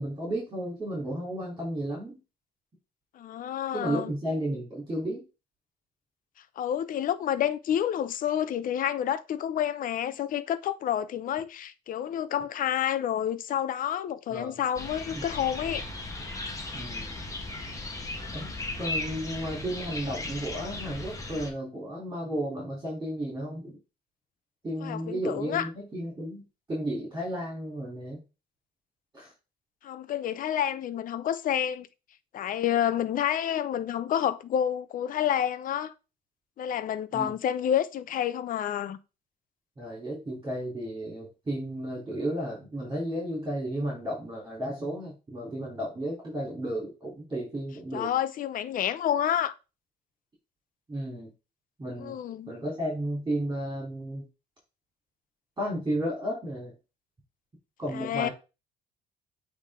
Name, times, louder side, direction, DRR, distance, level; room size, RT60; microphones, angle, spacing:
voice 1, 0.0-2.2 3.7-5.3 14.3-14.6 15.1-15.2 16.7-17.2 18.3-23.8 24.6-26.4 26.7-28.2 29.1-29.3 37.1-37.3 39.8-48.1 50.9-51.3 51.8-52.2 52.5-54.2 55.6-56.7 57.8-58.3, right 1 dB, 20° right, 3.4 m, -33 dB
voice 2, 3.1-4.1 6.6-15.8 24.8-25.7 29.8-31.9 32.3-35.9 36.6-39.0 47.9-49.5 52.0-52.5 57.9-58.3, left 10 dB, 55° left, 0.7 m, -29 dB
sound 1, 14.7-21.5, left 2 dB, 20° left, 1.4 m, -36 dB
8.3 x 3.6 x 3.7 m
cardioid pair, 110°, 17 cm